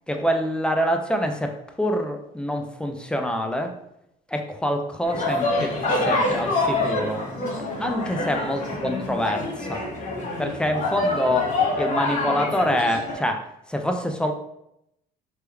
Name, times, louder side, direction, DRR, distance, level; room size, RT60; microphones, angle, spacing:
voice 1, 0.1-3.7 4.3-7.3 7.8-9.9 10.4-14.3, equal, 5° left, 4 dB, 0.3 m, -26 dB
sound 1, 5.0-13.1, left 2 dB, 45° left, 1.0 m, -26 dB
3.3 x 2.9 x 2.3 m, 0.80 s
cardioid pair, 110°, 17 cm